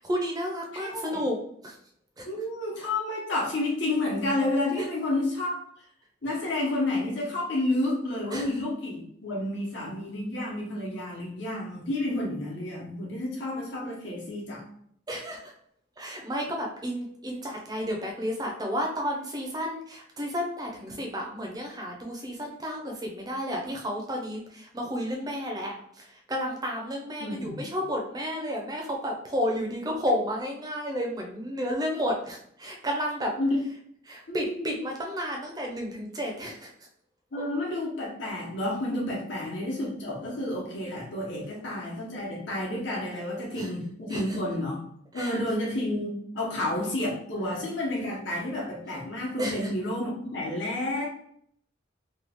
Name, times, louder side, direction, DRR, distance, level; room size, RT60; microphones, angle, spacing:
voice 1, 0.0-1.4 1.6-1.7 2.2-2.3 4.8-4.9 8.3-8.5 15.1-15.4 16.0-33.3 34.1-36.7 43.6-43.7 44.1-44.2 45.1-45.4 49.4-49.6, equal, 20° right, 0 dB, 0.6 m, -32 dB
voice 2, 0.7-1.2 2.2-5.6 6.2-14.6 27.2-27.6 33.4-33.6 34.3-34.8 37.3-44.8 45.1-51.0, left 1 dB, 70° left, -4 dB, 1.0 m, -30 dB
3.0 x 2.3 x 3.5 m, 0.67 s
head